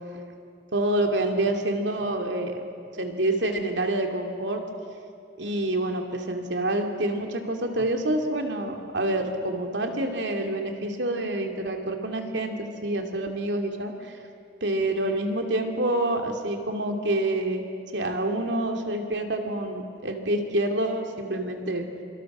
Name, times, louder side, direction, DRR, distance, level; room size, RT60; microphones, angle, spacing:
voice 1, 0.7-2.6 3.0-4.6 5.4-14.2 14.6-17.6 17.9-21.8, right 1 dB, 80° right, 3 dB, 2.7 m, -27 dB
26.5 x 26.5 x 6.2 m, 2.5 s
head